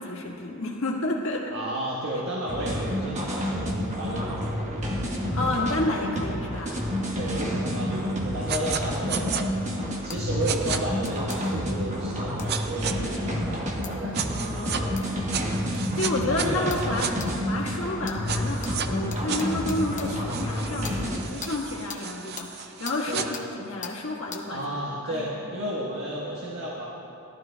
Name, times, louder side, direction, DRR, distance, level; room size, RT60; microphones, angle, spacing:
voice 1, 0.0-1.5 5.3-6.8 13.0-13.1 14.3-15.1 15.7-24.6 25.0-25.3, left 2 dB, 70° left, -2 dB, 1.6 m, -30 dB
voice 2, 1.5-4.8 7.1-15.0 16.3-17.0 17.2-17.4 23.1-23.3 24.4-26.9, right 1 dB, 70° right, -5 dB, 1.3 m, -33 dB
sound 1, 2.5-21.2, equal, 35° right, 1.2 m, -29 dB
sound 2, 8.5-8.8 9.1-9.4 10.5-10.8 12.5-12.9 14.1-14.8 15.3-17.1 18.3-18.9 19.3-23.3, right 8 dB, 50° right, 0.5 m, -33 dB
sound 3, 10.1-10.2 11.0-11.4 12.4-12.5 13.8-13.9 15.0-15.1 15.7-15.8 16.7-16.9 17.2-17.3 18.0-18.2 18.6-18.7 19.1-20.1 20.8-21.0 21.4-21.5 21.9-22.0 22.4-22.5 22.8-23.0 23.3-23.5 23.8-24.0 24.3-24.4, left 7 dB, 35° left, 0.8 m, -39 dB
17.5 x 12.0 x 2.2 m, 3.0 s
head